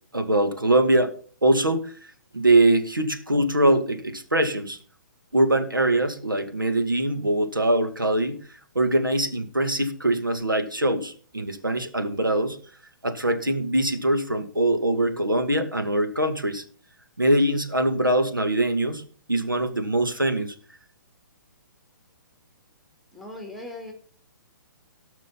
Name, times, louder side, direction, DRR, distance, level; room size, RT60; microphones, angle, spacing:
voice 1, 0.1-1.2 1.4-1.9 2.3-4.8 5.3-8.4 8.7-12.6 13.0-16.6 17.2-19.0 19.3-20.5, right 1 dB, 85° right, 6 dB, 2.2 m, -22 dB
voice 2, 23.1-23.9, left 2 dB, ahead, 3 dB, 2.5 m, -38 dB
18.5 x 6.2 x 4.2 m, 0.43 s
figure-of-eight pair, 125°, 11 cm